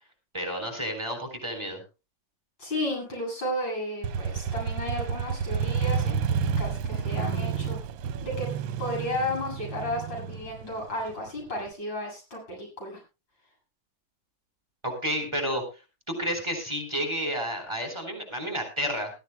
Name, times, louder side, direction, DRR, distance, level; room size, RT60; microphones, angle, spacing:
voice 1, 0.3-1.8 14.8-15.6 16.1-19.1, equal, 15° right, 3 dB, 4.3 m, -31 dB
voice 2, 2.6-7.8 8.2-8.5 8.8-13.0, left 1 dB, 75° left, 0 dB, 8.2 m, -33 dB
Motorcycle, 4.0-11.7, right 6 dB, 85° right, 1.6 m, -30 dB
20.5 x 14.0 x 2.2 m, 0.29 s
omnidirectional pair, 2.1 m